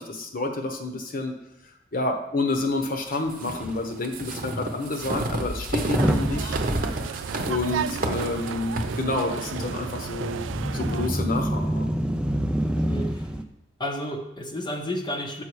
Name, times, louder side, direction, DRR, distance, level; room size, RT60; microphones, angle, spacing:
voice 1, 0.0-1.4 1.9-6.6 7.1-7.2 7.5-10.4 10.7-11.9, left 2 dB, 50° left, 4 dB, 1.0 m, -29 dB
Motor vehicle (road) / Engine starting / Accelerating revving vroom, 3.1-3.2 3.4-3.7 4.3-4.4 5.7-13.4, right 1 dB, 5° right, 0.4 m, -29 dB
sound 1, 3.3-11.2, right 1 dB, 50° right, 0.8 m, -31 dB
sound 2, 6.0-11.1, right 7 dB, 80° right, 0.3 m, -34 dB
voice 2, 12.9-13.3 13.8-15.4, left 1 dB, 25° left, 2 dB, 0.7 m, -31 dB
7.6 x 5.6 x 4.7 m, 0.85 s
head